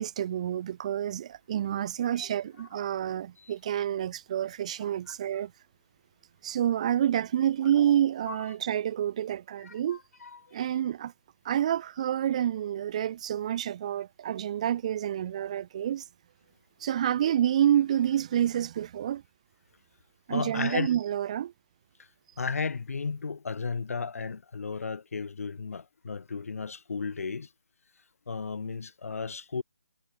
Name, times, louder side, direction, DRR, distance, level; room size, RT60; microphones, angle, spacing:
voice 1, 0.0-5.5 6.4-10.0 10.5-11.1 11.4-16.0 16.8-19.2 20.3-21.5, right 10 dB, 25° right, 0.6 m, -28 dB
voice 2, 4.8-5.1 8.3-8.4 9.6-10.6 20.3-20.9 22.0-22.1 22.4-27.5 28.3-29.6, left 5 dB, 80° left, 0.6 m, -34 dB
hypercardioid pair, 165°, 8 cm